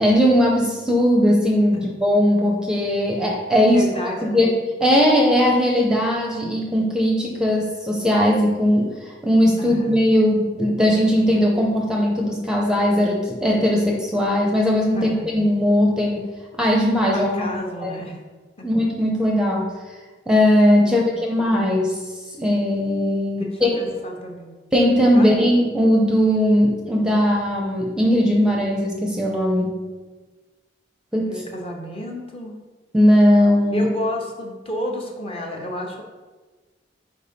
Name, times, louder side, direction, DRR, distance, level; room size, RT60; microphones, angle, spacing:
voice 1, 0.0-3.8 4.2-4.5 4.8-16.3 16.6-17.5 17.8-17.9 18.6-19.7 20.3-22.0 22.3-23.8 24.7-29.8 31.1-31.4 32.9-33.9, equal, 5° right, -1 dB, 0.6 m, -19 dB
voice 2, 3.6-4.4 9.6-10.0 14.9-15.3 17.1-18.2 18.6-18.7 20.8-21.2 23.3-24.5 25.1-25.3 31.3-32.6 33.7-36.0, equal, 35° left, 0 dB, 0.9 m, -31 dB
4.6 x 4.1 x 5.1 m, 1.3 s
head